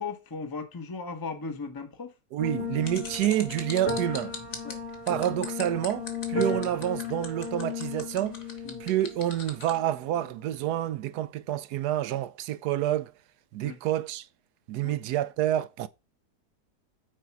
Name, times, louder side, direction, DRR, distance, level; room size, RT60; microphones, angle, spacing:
voice 1, 0.0-2.1 4.6-4.8 6.4-6.5 8.6-8.8 13.6-13.8 14.8-15.0, left 4 dB, 15° left, 0.8 m, -37 dB
voice 2, 2.3-4.4 5.1-8.4 8.8-13.1 13.5-14.2 14.7-15.9, right 12 dB, 75° right, 1.1 m, -28 dB
sound 1, 2.4-10.8, left 3 dB, 70° left, 2.9 m, -35 dB
sound 2, 2.8-9.8, left 5 dB, 55° left, 1.7 m, -40 dB
6.5 x 4.6 x 5.8 m
omnidirectional pair, 1.8 m